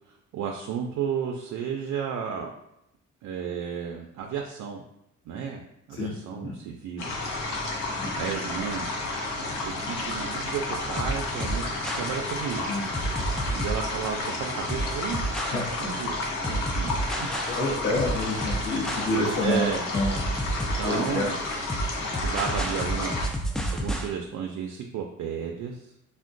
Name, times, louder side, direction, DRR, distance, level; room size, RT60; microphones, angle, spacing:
voice 1, 0.1-2.5 3.2-4.8 5.3-5.6 5.9-7.1 8.1-9.1 9.6-10.6 10.9-11.6 11.9-12.8 13.5-15.5 15.8-16.2 16.5-17.3 19.4-19.9 20.8-21.4 22.2-23.4 23.7-25.9, right 7 dB, 75° right, 2 dB, 0.4 m, -33 dB
voice 2, 5.9-6.5 8.0-8.1 12.7-12.8 15.5-15.8 17.5-19.7 19.9-20.2 20.8-21.3, left 2 dB, 40° left, -4 dB, 0.7 m, -28 dB
sound 1, 7.0-23.3, left 2 dB, 85° left, 0.7 m, -31 dB
sound 2, 10.1-24.1, right 1 dB, ahead, 0.3 m, -31 dB
3.5 x 2.2 x 2.5 m, 0.81 s
cardioid pair, 90°, 30 cm